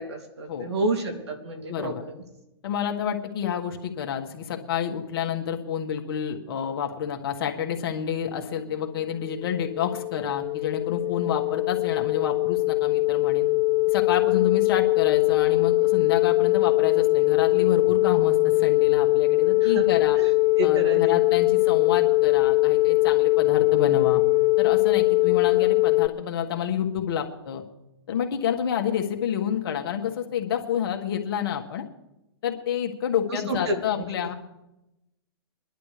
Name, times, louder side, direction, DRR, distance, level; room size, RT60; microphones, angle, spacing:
voice 1, 0.0-2.1 19.6-19.8 20.1-21.2 33.3-34.0, right 2 dB, 85° right, 4 dB, 2.8 m, -30 dB
voice 2, 1.6-2.0 2.6-13.5 13.9-20.2 20.6-24.2 24.6-27.6 28.1-31.8 32.4-34.3, left 8 dB, 60° left, 3 dB, 1.8 m, -29 dB
sound 1, 9.0-26.1, left 22 dB, 30° left, 0.6 m, -21 dB
24.0 x 11.0 x 3.4 m, 0.92 s
hypercardioid pair, 125°, 14 cm